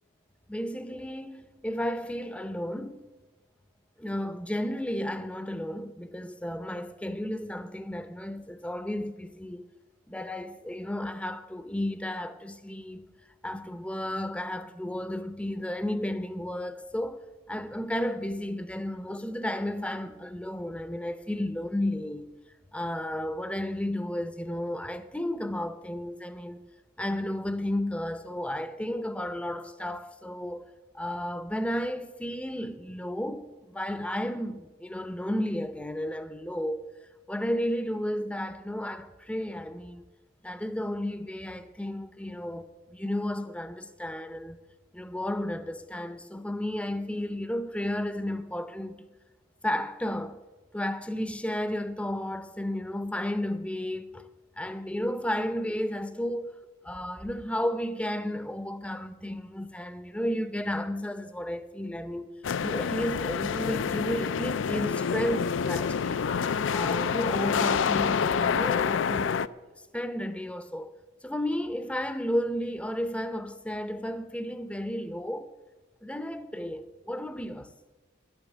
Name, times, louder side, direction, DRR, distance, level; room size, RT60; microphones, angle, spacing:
voice 1, 0.5-3.1 4.0-9.7 10.1-13.1 13.4-22.3 22.7-26.7 27.0-30.7 30.9-36.9 37.3-40.1 40.4-44.6 44.9-49.0 49.6-50.4 50.7-54.3 54.6-56.5 56.8-62.3 62.6-66.2 66.7-69.5 69.9-75.5 76.0-77.7, left 1 dB, 5° left, 0.6 m, -33 dB
sound 1, 62.4-69.5, left 6 dB, 75° left, 0.4 m, -27 dB
11.0 x 8.8 x 8.3 m
head